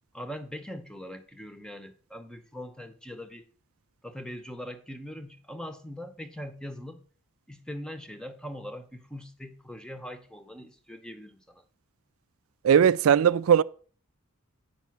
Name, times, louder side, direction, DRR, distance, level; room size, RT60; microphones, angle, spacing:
voice 1, 0.1-3.5 4.0-7.0 7.5-11.6, equal, 5° left, 0.7 m, -41 dB
voice 2, 12.6-13.6, right 8 dB, 70° right, 0.3 m, -19 dB
9.3 x 5.5 x 5.8 m
head